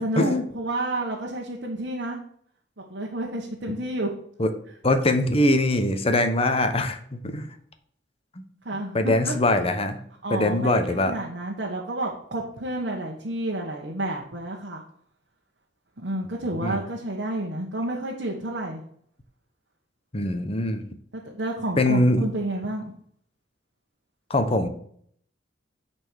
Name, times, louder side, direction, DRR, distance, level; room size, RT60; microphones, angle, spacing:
voice 1, 0.0-2.2 2.9-4.1 8.6-9.4 10.2-14.8 16.0-18.8 21.1-22.9, right 1 dB, 70° right, -2 dB, 1.3 m, -30 dB
voice 2, 4.8-7.5 8.4-8.5 8.9-10.0 10.3-11.1 16.6-16.8 20.1-20.8 21.8-22.2 24.3-24.7, left 1 dB, 35° left, 7 dB, 1.0 m, -22 dB
9.9 x 4.4 x 6.3 m, 0.64 s
head